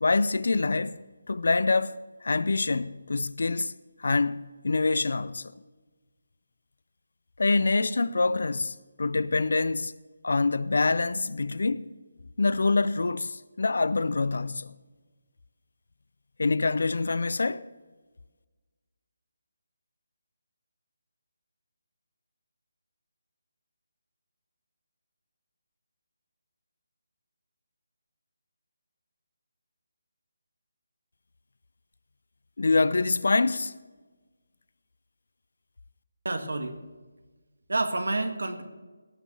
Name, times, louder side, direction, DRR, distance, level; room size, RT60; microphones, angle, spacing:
voice 1, 0.0-3.7 4.0-5.5 7.4-9.9 10.2-11.9 12.4-14.7 16.4-17.7 32.6-33.7, left 3 dB, 70° left, 0.5 m, -25 dB
voice 2, 36.2-36.8 37.7-38.6, right 2 dB, 80° right, 1.7 m, -28 dB
17.0 x 6.3 x 6.9 m
figure-of-eight pair, 160°, 0 cm